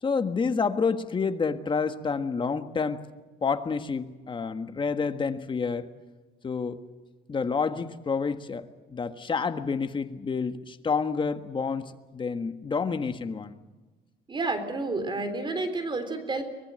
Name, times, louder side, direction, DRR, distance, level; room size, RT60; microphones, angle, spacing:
voice 1, 0.0-3.1 3.4-5.9 6.4-6.8 7.3-13.5, left 5 dB, 30° left, 9 dB, 1.5 m, -29 dB
voice 2, 14.3-16.4, right 3 dB, 30° right, 9 dB, 3.7 m, -30 dB
24.0 x 20.5 x 7.7 m, 1.2 s
cardioid pair, 110°, 17 cm